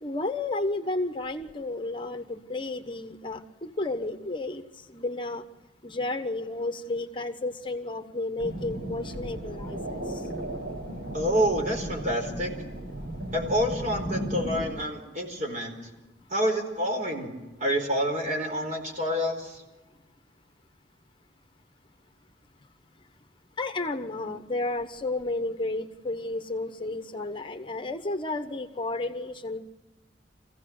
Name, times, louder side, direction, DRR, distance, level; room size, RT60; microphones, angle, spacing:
voice 1, 0.0-4.6 4.9-5.4 5.8-10.2 23.6-29.6, left 2 dB, 25° left, 8 dB, 1.1 m, -32 dB
sound 1, 8.4-14.7, right 1 dB, 65° right, 6.1 m, -35 dB
voice 2, 11.1-12.5 13.3-15.7 16.3-17.3 17.6-19.6, equal, 40° right, 3 dB, 4.7 m, -28 dB
24.5 x 16.0 x 7.8 m, 1.1 s
head